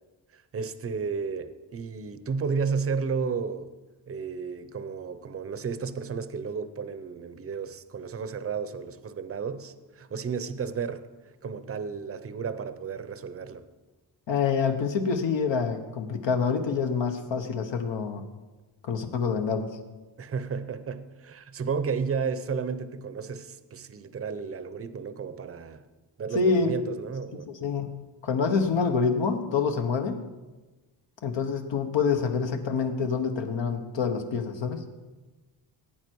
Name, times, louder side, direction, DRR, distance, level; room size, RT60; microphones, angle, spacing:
voice 1, 0.3-3.7 4.1-11.1 11.4-13.7 20.2-25.8 26.2-27.5, right 5 dB, 30° right, 12 dB, 0.7 m, -33 dB
voice 2, 14.3-18.2 18.8-19.7 26.3-26.8 27.3-30.3 31.2-34.9, left 5 dB, 70° left, 5 dB, 1.3 m, -27 dB
16.5 x 9.0 x 4.7 m, 1.2 s
wide cardioid pair, 135°, 46 cm